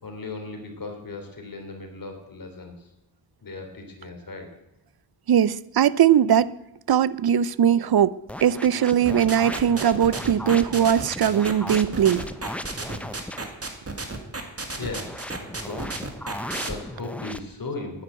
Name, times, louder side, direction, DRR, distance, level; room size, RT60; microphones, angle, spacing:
voice 1, 0.0-2.9 3.4-4.5 13.7-14.1 14.8-16.0 16.5-18.0, left 3 dB, 50° left, 3.3 m, -37 dB
voice 2, 5.3-6.5 6.9-8.1 8.4-12.2, right 9 dB, 60° right, 0.6 m, -20 dB
sound 1, 8.3-13.5 14.9-17.4, left 1 dB, 5° left, 0.7 m, -36 dB
sound 2, 9.0-16.7, right 3 dB, 35° right, 2.1 m, -32 dB
9.9 x 9.4 x 9.0 m
wide cardioid pair, 95°, 43 cm